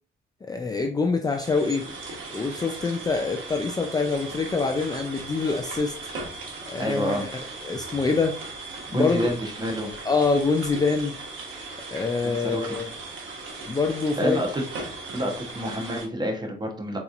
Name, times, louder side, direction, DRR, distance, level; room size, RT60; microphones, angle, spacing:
voice 1, 0.4-1.9 2.3-5.9 6.7-7.4 7.6-8.4 8.9-9.3 10.1-11.1 11.9-12.9 13.7-14.4, left 4 dB, 20° left, 4 dB, 0.4 m, -25 dB
sound 1, 1.3-16.1, right 3 dB, 75° right, 1.1 m, -38 dB
voice 2, 6.8-7.2 8.9-9.9 12.2-12.8 14.2-14.6 15.1-17.0, equal, 20° right, 2 dB, 1.0 m, -28 dB
3.9 x 2.9 x 2.4 m, 0.43 s
cardioid pair, 90°, 20 cm